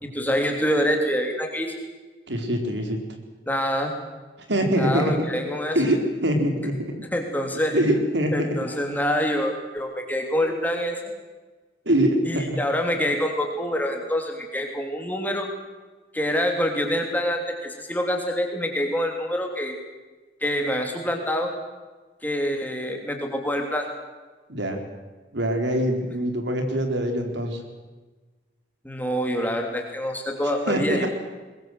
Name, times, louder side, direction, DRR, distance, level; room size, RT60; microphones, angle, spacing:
voice 1, 0.0-1.7 3.5-3.9 4.8-5.8 7.1-7.8 8.3-10.9 12.2-15.5 16.1-19.8 20.4-21.5 22.2-23.9 28.8-31.1, equal, 10° left, 2 dB, 3.2 m, -26 dB
voice 2, 2.3-3.0 4.5-5.3 5.7-6.9 7.7-8.5 11.9-12.6 24.5-24.8 25.3-27.6 30.7-31.1, right 1 dB, 80° right, 5 dB, 4.2 m, -23 dB
22.0 x 21.5 x 7.9 m, 1.3 s
head